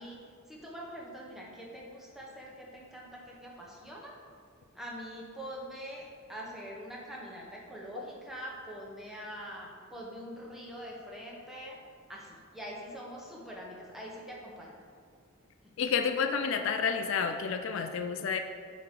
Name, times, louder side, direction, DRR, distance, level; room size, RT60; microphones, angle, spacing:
voice 1, 0.0-4.2 4.7-11.8 12.1-14.8, equal, ahead, -4 dB, 0.9 m, -44 dB
voice 2, 15.8-18.4, left 6 dB, 60° left, 6 dB, 0.3 m, -30 dB
8.4 x 2.9 x 5.2 m, 2.1 s
head